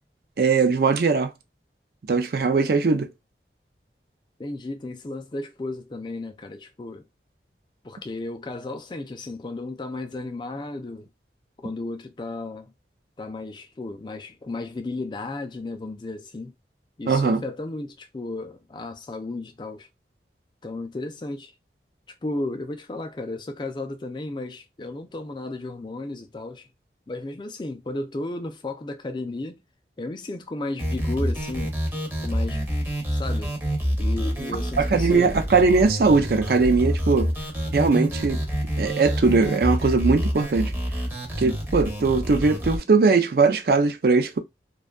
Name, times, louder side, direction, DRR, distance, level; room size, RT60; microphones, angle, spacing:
voice 1, 0.4-1.3 2.1-3.1 17.1-17.4 34.8-37.3 37.7-38.4 38.8-40.7 41.4-44.4, right 4 dB, 55° right, 0.4 m, -20 dB
voice 2, 4.4-7.1 7.8-11.1 11.6-12.7 13.2-16.5 17.0-19.9 20.6-21.5 22.2-26.7 27.1-29.6 30.0-31.7 32.2-32.6 33.1-33.5 34.0-35.4, left 2 dB, 25° left, 0.3 m, -34 dB
sound 1, 30.8-42.8, equal, 10° right, 0.6 m, -27 dB
2.6 x 2.3 x 2.2 m
head